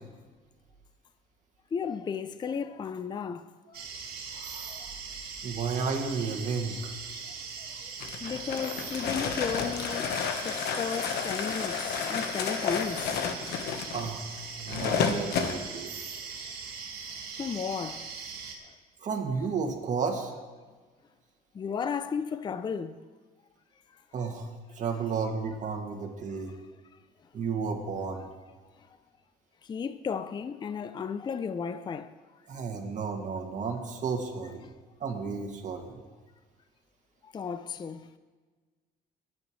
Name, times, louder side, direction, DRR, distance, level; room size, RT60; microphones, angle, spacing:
voice 1, 1.7-3.8 4.7-4.9 7.6-7.7 8.2-10.1 10.4-13.1 14.7-14.9 17.4-18.1 21.5-23.0 26.5-26.6 29.7-32.1 32.9-33.1 37.2-38.1, left 6 dB, 25° left, 0.5 m, -34 dB
sound 1, 3.7-18.5, right 5 dB, 65° right, 2.1 m, -40 dB
voice 2, 4.3-4.9 5.4-6.9 13.9-15.9 19.0-20.3 24.1-24.5 24.7-26.5 27.3-28.3 32.5-34.6 35.0-35.9, right 5 dB, 45° right, 2.2 m, -32 dB
sound 2, 8.0-15.6, left 7 dB, 75° left, 1.2 m, -31 dB
22.0 x 9.5 x 3.2 m
cardioid pair, 110°, 17 cm